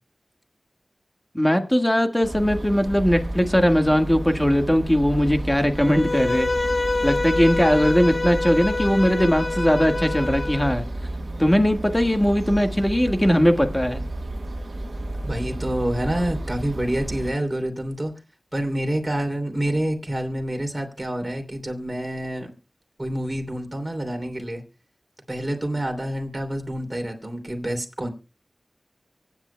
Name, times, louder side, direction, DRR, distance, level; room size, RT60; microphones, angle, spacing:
voice 1, 1.3-6.5 7.0-10.8 11.4-14.0, equal, 15° left, 6 dB, 1.6 m, -20 dB
sound 1, 2.2-17.3, right 1 dB, 70° right, 1.4 m, -32 dB
Bowed string instrument, 5.8-10.8, left 2 dB, 45° left, 1.0 m, -26 dB
voice 2, 15.2-18.1 18.5-22.5 23.0-24.6 25.3-28.1, right 1 dB, 25° right, 3 dB, 3.0 m, -27 dB
24.5 x 9.1 x 2.2 m, 0.30 s
wide cardioid pair, 50°, 0 cm